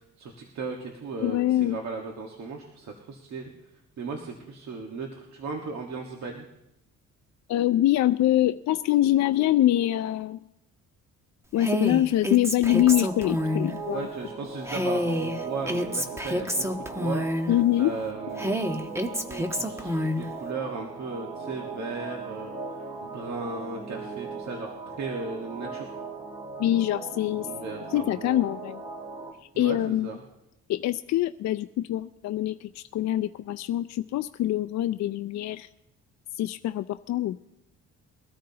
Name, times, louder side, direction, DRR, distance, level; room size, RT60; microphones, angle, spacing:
voice 1, 0.0-3.5 4.0-6.4 13.9-17.2 17.8-18.9 19.3-24.7 25.0-25.9 27.3-28.4 29.5-30.2, right 4 dB, 65° right, 1 dB, 1.6 m, -36 dB
voice 2, 1.2-1.8 7.5-10.4 11.5-14.1 17.5-18.0 26.6-27.5 27.9-28.8 29.6-30.1 30.7-35.7 36.4-37.4, left 13 dB, 65° left, 9 dB, 0.4 m, -24 dB
Female speech woman speaking, 11.6-13.7 14.7-17.6 18.4-20.3, equal, 10° right, 1.1 m, -28 dB
sad pad looping (consolidated), 12.7-29.3, right 3 dB, 25° right, 3.3 m, -39 dB
22.0 x 13.0 x 2.9 m, 0.86 s
cardioid pair, 90°, 30 cm